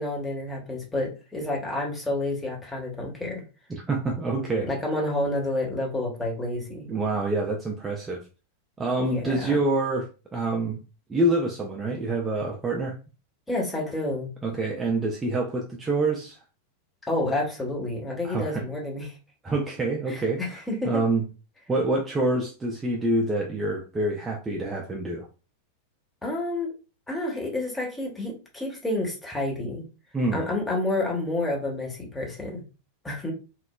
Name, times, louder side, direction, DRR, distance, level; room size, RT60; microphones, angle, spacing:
voice 1, 0.0-3.4 4.6-6.9 9.0-9.6 13.5-14.3 17.0-19.1 20.1-21.0 26.2-26.7 27.1-29.9 30.3-32.6 33.0-33.3, left 2 dB, 10° left, -2 dB, 0.9 m, -29 dB
voice 2, 3.7-4.7 6.9-8.2 8.8-10.8 11.1-13.0 14.4-16.4 18.2-18.6 19.4-21.2 21.7-25.3 30.1-30.4, right 2 dB, 15° right, 0 dB, 0.4 m, -26 dB
2.9 x 2.0 x 2.2 m, 0.33 s
figure-of-eight pair, 90°, 0 cm